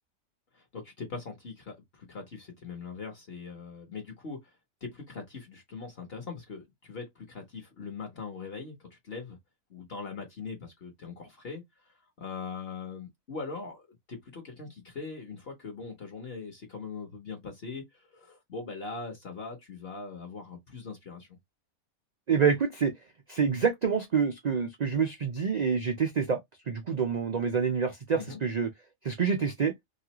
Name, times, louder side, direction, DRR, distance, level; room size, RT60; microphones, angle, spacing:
voice 1, 0.5-4.4 4.8-9.4 9.7-11.6 12.2-21.4 28.1-28.4, left 4 dB, 50° left, 1.1 m, -41 dB
voice 2, 22.3-22.9 23.3-26.4 26.7-28.7 29.0-29.7, right 6 dB, 75° right, 0.3 m, -27 dB
3.0 x 2.4 x 2.9 m
omnidirectional pair, 1.5 m